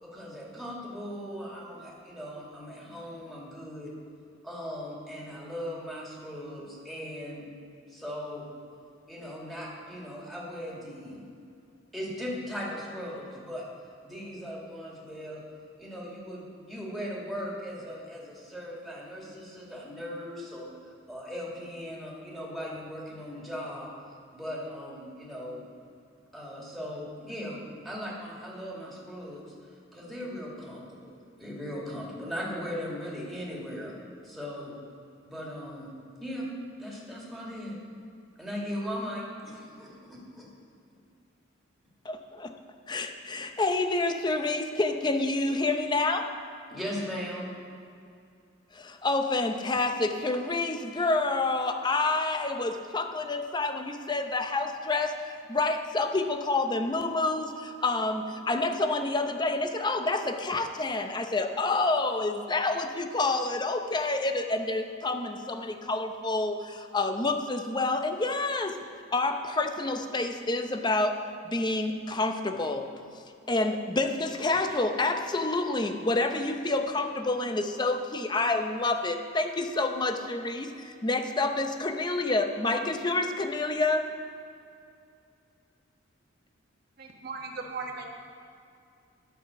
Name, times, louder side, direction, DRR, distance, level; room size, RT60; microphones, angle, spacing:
voice 1, 0.0-3.9 4.4-7.4 7.9-8.5 9.1-11.2 11.9-13.7 14.0-15.4 15.8-20.7 21.1-23.9 24.3-25.6 26.3-34.0 34.2-34.8 35.2-36.5 36.8-37.8 38.4-40.5 46.7-47.5, equal, ahead, -5 dB, 2.1 m, -38 dB
voice 2, 42.0-42.5 42.9-46.3 48.7-68.8 69.1-71.2 71.4-72.9 73.5-84.1, left 2 dB, 20° left, 6 dB, 0.6 m, -28 dB
voice 3, 87.0-88.1, right 4 dB, 50° right, 1 dB, 1.2 m, -37 dB
11.0 x 5.9 x 6.9 m, 2.4 s
head